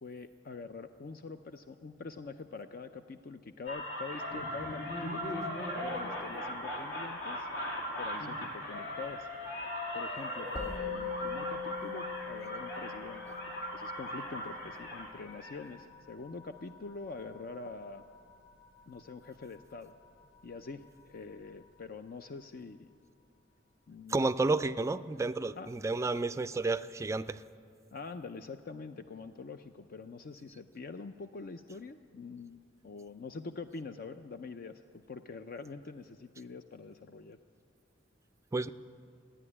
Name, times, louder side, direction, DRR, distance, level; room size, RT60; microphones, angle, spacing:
voice 1, 0.0-5.2 5.8-7.5 8.0-9.3 9.9-18.0 18.9-19.9 20.4-22.9 23.9-24.7 25.5-25.7 27.9-37.4, left 4 dB, 50° left, 9 dB, 0.5 m, -45 dB
sound 1, 3.7-15.6, equal, 65° left, 2.5 m, -39 dB
Musical instrument, 10.6-20.1, left 6 dB, 25° left, 2.3 m, -43 dB
voice 2, 24.1-27.4 38.5-38.7, right 3 dB, 15° right, 12 dB, 0.3 m, -31 dB
14.5 x 10.0 x 9.8 m, 2.3 s
head